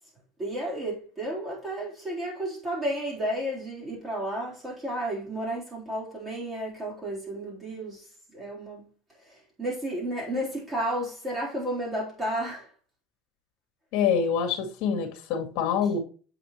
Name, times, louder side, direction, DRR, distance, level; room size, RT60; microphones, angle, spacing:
voice 1, 0.4-8.1 8.3-8.9 9.2-12.7, right 1 dB, 20° right, 3.4 m, -32 dB
voice 2, 13.9-16.0, left 7 dB, 65° left, 2.0 m, -26 dB
7.8 x 5.0 x 3.1 m
cardioid pair, 135°, 0 cm